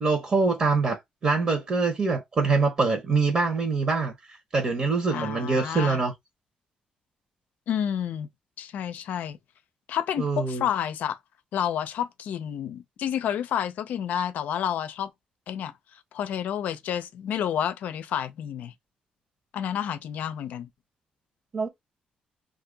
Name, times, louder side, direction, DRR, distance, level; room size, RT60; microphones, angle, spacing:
voice 1, 0.0-4.1 4.5-6.1 10.2-10.6 21.5-21.7, right 4 dB, 40° right, 0.9 m, -24 dB
voice 2, 5.1-6.0 7.7-8.3 8.6-9.4 9.9-11.2 11.5-15.1 15.5-18.7 19.5-20.7, left 9 dB, 80° left, 0.5 m, -30 dB
2.8 x 2.5 x 3.8 m
cardioid pair, 110°, 3 cm